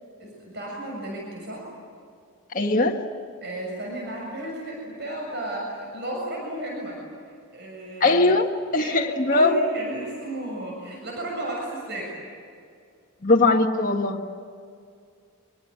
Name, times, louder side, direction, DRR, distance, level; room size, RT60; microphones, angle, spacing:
voice 1, 0.2-1.7 3.4-8.2 8.7-12.1, right 1 dB, 50° right, -1 dB, 6.9 m, -34 dB
voice 2, 2.5-3.0 8.0-9.5 13.2-14.3, left 2 dB, 40° left, 0 dB, 1.6 m, -20 dB
25.5 x 24.0 x 9.8 m, 2.3 s
head